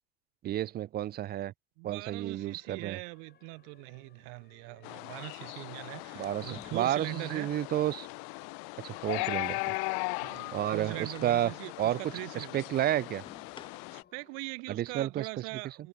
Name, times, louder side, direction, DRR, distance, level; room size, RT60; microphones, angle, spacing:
voice 1, 0.4-1.5 1.8-3.0 6.1-8.1 8.8-9.7 10.5-11.5 11.8-12.0 12.3-13.2 14.7-15.3 15.6-15.7, right 12 dB, 35° right, 0.5 m, -31 dB
voice 2, 1.8-7.5 10.2-12.5 13.9-15.9, right 40 dB or more, 75° right, 0.9 m, -41 dB
sound 1, 2.3-14.6, left 9 dB, 35° left, 6.3 m, -63 dB
sound 2, 4.2-4.4 6.4-7.2 9.2-9.8 11.2-11.7 13.3-14.1, left 5 dB, 15° left, 1.2 m, -53 dB
sound 3, 4.8-14.0, left 40 dB or more, 70° left, 1.1 m, -38 dB
cardioid pair, 130°, 30 cm